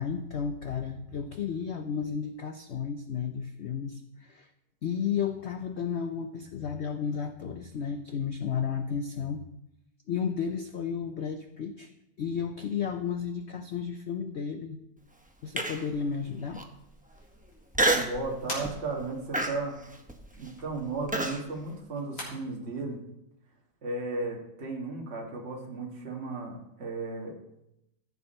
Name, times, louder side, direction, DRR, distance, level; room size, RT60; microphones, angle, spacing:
voice 1, 0.0-4.5 4.8-9.4 10.1-11.9 12.2-14.8 15.4-16.7, left 7 dB, 80° left, 7 dB, 0.6 m, -33 dB
sound 1, 15.2-22.3, left 1 dB, 65° left, 4.0 m, -47 dB
Human voice, 15.6-16.0 16.5-16.6 17.7-18.2 18.6-18.9 19.3-21.4, right 1 dB, 10° right, 0.3 m, -28 dB
voice 2, 17.9-19.8 20.4-23.0 23.8-27.4, right 3 dB, 35° right, 0 dB, 1.9 m, -35 dB
14.5 x 7.2 x 4.3 m, 0.84 s
omnidirectional pair, 1.9 m